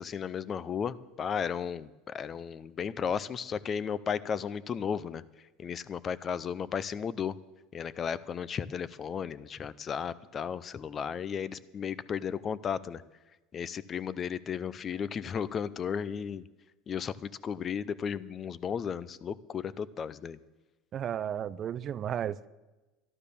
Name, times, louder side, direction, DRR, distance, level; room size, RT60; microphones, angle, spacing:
voice 1, 0.0-5.2 5.6-7.4 7.7-13.0 13.5-16.4 16.9-20.4, left 7 dB, 30° left, 18 dB, 0.6 m, -34 dB
voice 2, 20.9-22.5, right 9 dB, 35° right, 16 dB, 0.5 m, -33 dB
12.0 x 12.0 x 6.9 m, 1.1 s
supercardioid pair, 135°, 0 cm